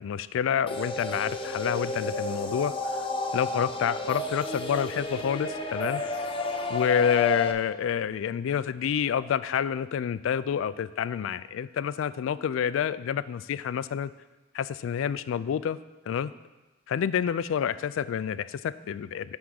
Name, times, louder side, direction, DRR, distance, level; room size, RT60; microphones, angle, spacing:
voice 1, 0.0-3.1 3.3-6.0 6.7-14.1 14.5-15.8 16.1-16.3 16.9-19.4, left 8 dB, 90° left, 17 dB, 0.3 m, -28 dB
sound 1, 0.7-7.5, left 2 dB, 30° left, 0.6 m, -31 dB
9.7 x 3.5 x 6.4 m, 1.1 s
head